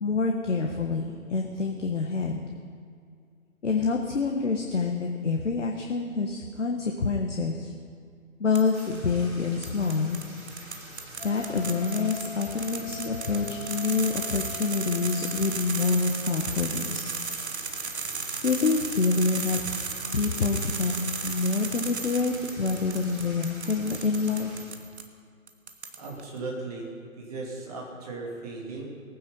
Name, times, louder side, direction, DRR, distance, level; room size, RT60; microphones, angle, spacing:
voice 1, 0.0-2.4 3.6-7.7 8.4-10.2 11.2-17.0 18.4-19.8 20.1-24.5, left 4 dB, 55° left, 2 dB, 1.4 m, -27 dB
sound 1, 8.6-9.0 9.6-25.1 25.5-26.2, right 4 dB, 50° right, 1.3 m, -36 dB
sound 2, 8.7-24.7, right 1 dB, 85° right, 3.3 m, -45 dB
Wind instrument woodwind instrument, 11.2-15.9, left 8 dB, 35° left, 0.8 m, -43 dB
voice 2, 25.9-28.9, right 3 dB, 25° right, -2 dB, 2.7 m, -37 dB
19.5 x 9.5 x 5.6 m, 2.3 s
figure-of-eight pair, 145°, 42 cm